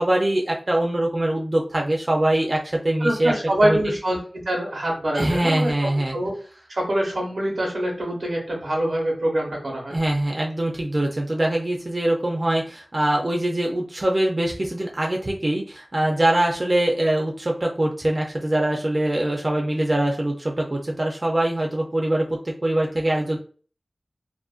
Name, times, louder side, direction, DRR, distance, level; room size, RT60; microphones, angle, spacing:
voice 1, 0.0-3.3 3.6-3.8 5.1-6.2 9.9-23.4, right 1 dB, 45° right, 0 dB, 0.4 m, -23 dB
voice 2, 3.0-5.7 6.1-6.3 6.7-10.0, right 1 dB, 90° right, -1 dB, 0.9 m, -24 dB
2.4 x 2.1 x 2.4 m, 0.41 s
wide cardioid pair, 50°, 0 cm